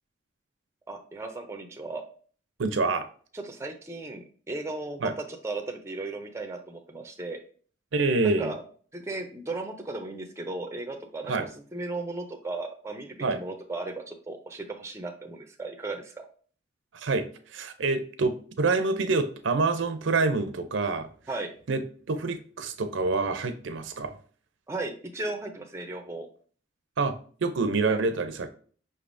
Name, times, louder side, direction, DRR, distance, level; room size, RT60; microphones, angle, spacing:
voice 1, 0.9-2.0 3.3-7.4 8.2-8.6 8.9-16.1 21.3-21.5 24.7-26.3, right 2 dB, 15° right, 5 dB, 0.5 m, -36 dB
voice 2, 2.6-3.1 5.0-5.1 7.9-8.5 11.3-11.5 13.2-13.4 16.9-17.2 17.5-21.1 21.7-21.8 22.1-24.1 27.0-27.1 27.4-28.5, right 3 dB, 85° right, 9 dB, 0.5 m, -26 dB
5.3 x 3.4 x 2.5 m, 0.44 s
head